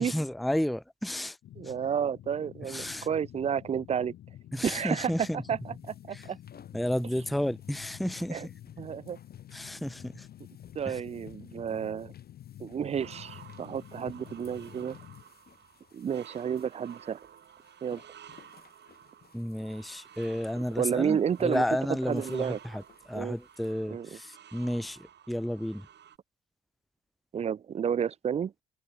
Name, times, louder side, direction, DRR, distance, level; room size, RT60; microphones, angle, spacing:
voice 1, 0.0-1.4 1.6-1.7 2.6-3.1 4.5-5.4 6.1-6.3 6.7-8.6 9.5-10.3 10.9-11.0 19.3-25.9, left 1 dB, ahead, 0.7 m, -32 dB
sound 1, 1.4-15.2, left 12 dB, 75° left, 2.6 m, -49 dB
voice 2, 1.6-4.1 4.6-5.1 5.5-5.6 5.9-6.4 8.3-8.5 8.8-9.2 10.8-12.1 12.6-15.0 15.9-17.2 17.8-18.0 20.8-21.6 22.1-22.6 23.1-23.3 23.9-24.1 27.3-28.5, right 8 dB, 35° right, 0.4 m, -31 dB
sound 2, 5.4-23.8, left 7 dB, 50° left, 4.0 m, -59 dB
sound 3, 13.0-26.2, right 10 dB, 60° right, 2.2 m, -53 dB
cardioid pair, 90°, 20 cm